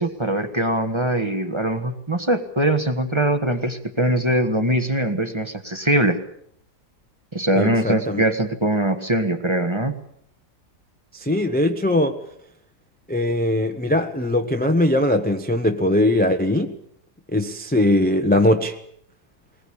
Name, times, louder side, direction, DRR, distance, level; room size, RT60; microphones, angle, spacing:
voice 1, 0.0-6.2 7.3-10.0, right 1 dB, 20° right, 8 dB, 1.4 m, -22 dB
voice 2, 7.5-8.2 11.1-12.2 13.1-16.7 17.3-18.8, left 1 dB, 5° left, 6 dB, 0.9 m, -20 dB
21.5 x 20.0 x 8.6 m, 0.68 s
omnidirectional pair, 1.7 m